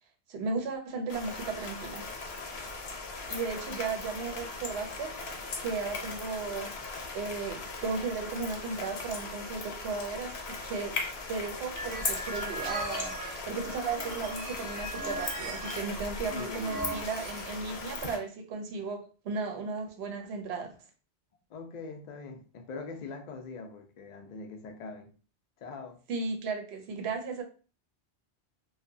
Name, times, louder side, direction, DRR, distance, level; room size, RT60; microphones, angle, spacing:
voice 1, 0.3-2.0 3.3-6.7 7.1-20.7 26.1-27.4, right 4 dB, 75° right, 0.9 m, -35 dB
sound 1, 1.1-18.2, left 3 dB, 70° left, 0.9 m, -39 dB
sound 2, 11.8-17.4, right 2 dB, 45° right, 0.7 m, -39 dB
voice 2, 16.3-16.9 21.5-25.1 25.6-26.0, left 4 dB, 55° left, 0.5 m, -42 dB
2.7 x 2.2 x 2.5 m
omnidirectional pair, 1.1 m